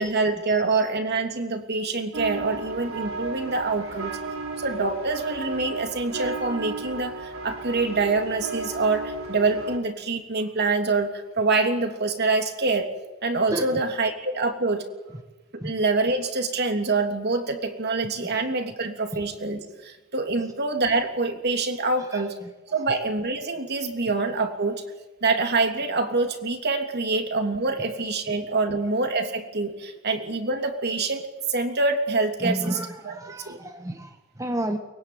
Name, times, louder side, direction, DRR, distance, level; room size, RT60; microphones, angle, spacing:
voice 1, 0.0-4.2 4.6-12.9 13.2-14.8 15.5-22.4 22.7-24.8 25.2-32.8 33.0-33.2 33.5-33.6, right 3 dB, 55° right, 5 dB, 3.1 m, -25 dB
sound 1, 2.1-9.8, right 3 dB, 90° right, 3.9 m, -34 dB
voice 2, 22.1-22.5 32.4-34.8, right 1 dB, 15° right, 6 dB, 1.4 m, -31 dB
23.5 x 21.5 x 9.5 m, 1.1 s
head